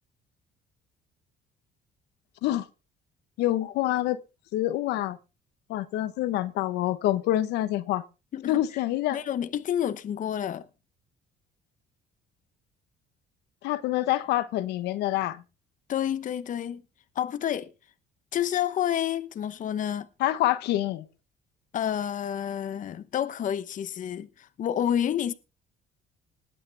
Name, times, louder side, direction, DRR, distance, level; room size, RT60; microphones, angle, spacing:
voice 1, 3.4-4.2 4.5-5.2 5.7-8.0 8.5-9.2 13.6-15.4 20.2-21.0, left 14 dB, 85° left, 1.1 m, -26 dB
voice 2, 8.3-8.8 9.1-10.7 15.9-16.8 17.1-17.7 18.3-20.1 21.7-25.3, left 10 dB, 50° left, 1.0 m, -29 dB
19.5 x 8.9 x 3.5 m
cardioid pair, 110°, 17 cm